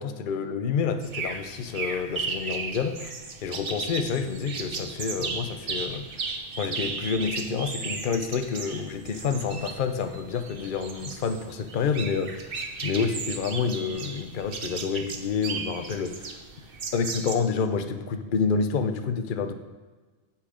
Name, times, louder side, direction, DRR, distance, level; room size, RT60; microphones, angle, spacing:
voice 1, 0.0-3.1 3.4-6.2 6.5-12.3 12.8-16.4 16.9-19.5, left 5 dB, 50° left, 8 dB, 0.8 m, -28 dB
sound 1, 1.0-17.4, right 4 dB, 55° right, 1.1 m, -36 dB
15.0 x 5.8 x 5.0 m, 1.3 s
omnidirectional pair, 1.2 m